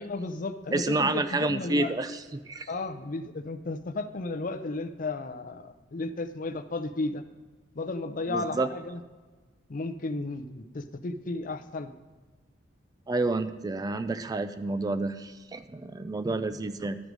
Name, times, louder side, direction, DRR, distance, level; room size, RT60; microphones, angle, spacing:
voice 1, 0.0-2.0 2.7-7.2 7.8-9.0 9.7-11.9, left 2 dB, 45° left, 10 dB, 0.5 m, -34 dB
voice 2, 0.7-2.7 8.3-8.7 13.1-17.0, right 2 dB, 20° right, 11 dB, 0.3 m, -29 dB
12.5 x 4.7 x 5.1 m, 1.3 s
head